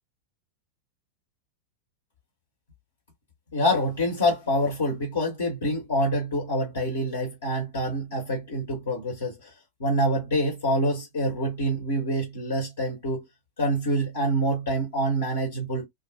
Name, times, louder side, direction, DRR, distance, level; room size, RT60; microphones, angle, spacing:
voice 1, 3.5-9.5 9.8-13.3 13.6-15.9, equal, 65° left, 0.9 m, -26 dB
2.3 x 2.1 x 2.6 m
figure-of-eight pair, 90°, 0 cm